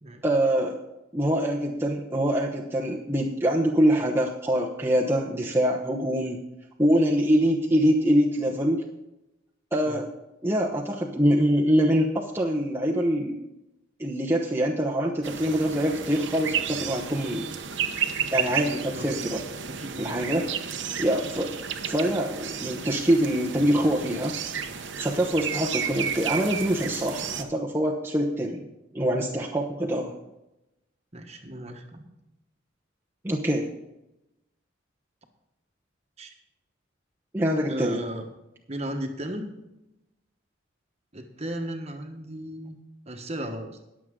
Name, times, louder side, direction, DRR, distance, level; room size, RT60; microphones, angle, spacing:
voice 1, 0.2-0.8 1.1-6.4 6.8-8.8 9.7-10.1 10.4-13.4 14.0-17.5 18.3-19.3 20.0-20.5 21.0-21.5 21.8-24.4 25.0-28.6 28.9-30.1 33.2-33.7 37.3-38.0, equal, 10° right, -3 dB, 1.0 m, -24 dB
sound 1, 15.2-27.4, right 7 dB, 60° right, 1.0 m, -32 dB
voice 2, 19.7-20.1 31.1-32.0 36.2-36.3 37.7-38.2 38.7-39.5 41.1-42.8 43.1-43.8, right 1 dB, 30° right, 4 dB, 1.4 m, -35 dB
20.5 x 7.5 x 3.8 m, 0.94 s
head